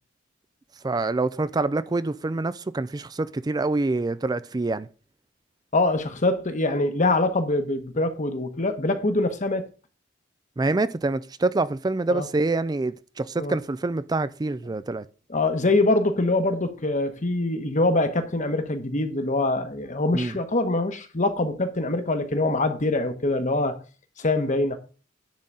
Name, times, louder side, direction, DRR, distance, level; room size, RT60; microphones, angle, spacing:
voice 1, 0.8-4.9 10.6-15.1 20.1-20.4, right 3 dB, 20° right, 0.4 m, -26 dB
voice 2, 5.7-9.7 12.1-12.3 13.4-13.6 15.3-23.8 24.2-24.8, left 2 dB, 40° left, 1.2 m, -24 dB
10.5 x 4.0 x 7.5 m
head